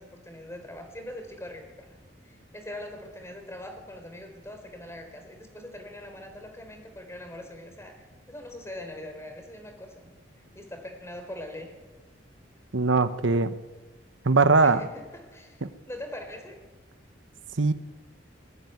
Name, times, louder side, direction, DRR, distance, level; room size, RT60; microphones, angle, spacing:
voice 1, 0.0-2.0 2.2-10.1 10.5-11.7 14.6-16.6, left 1 dB, 15° left, 5 dB, 4.1 m, -42 dB
voice 2, 12.7-13.6 14.2-14.8 15.6-15.7 17.6-17.7, right 3 dB, 85° right, 12 dB, 1.0 m, -21 dB
20.5 x 16.5 x 9.5 m, 1.2 s
head